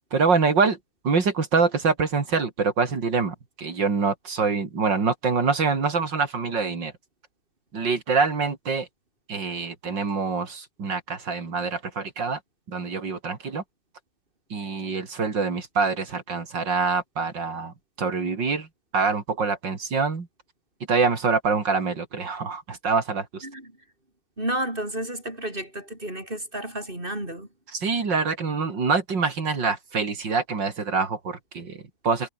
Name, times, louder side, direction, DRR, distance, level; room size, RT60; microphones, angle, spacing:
voice 1, 0.1-0.8 1.0-6.9 7.7-8.9 9.3-12.4 12.7-13.6 14.5-18.7 18.9-20.3 20.9-23.5 27.7-32.3, right 4 dB, 80° right, 3.7 m, -25 dB
voice 2, 24.4-27.5, right 1 dB, 30° right, 6.3 m, -31 dB
omnidirectional pair, 1.9 m